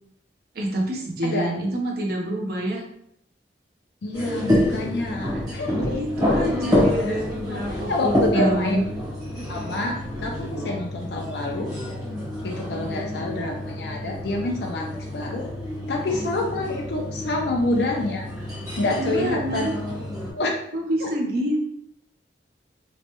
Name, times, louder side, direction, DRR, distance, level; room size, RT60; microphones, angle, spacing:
voice 1, 0.5-2.8 5.3-5.4 5.7-8.8 9.4-9.5 18.9-19.8 20.7-21.6, right 1 dB, 60° right, 0 dB, 0.7 m, -27 dB
voice 2, 4.0-6.0 7.5-8.8 9.5-10.0 10.2-11.7 12.4-15.4 15.9-18.3 18.8-19.7 20.3-20.6 21.0-21.1, left 2 dB, 65° left, 0 dB, 0.4 m, -27 dB
sound 1, 4.1-20.3, left 1 dB, 20° right, 1.0 m, -28 dB
3.0 x 2.1 x 2.9 m, 0.74 s
head